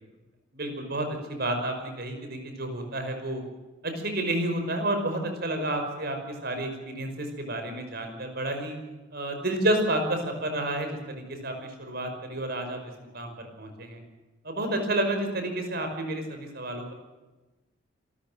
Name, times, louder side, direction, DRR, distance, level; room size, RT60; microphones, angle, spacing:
voice 1, 0.5-3.4 3.8-6.2 6.4-8.8 9.1-12.8 13.1-14.0 14.4-16.9, right 1 dB, 55° right, 5 dB, 5.5 m, -30 dB
27.0 x 14.5 x 7.6 m, 1.1 s
head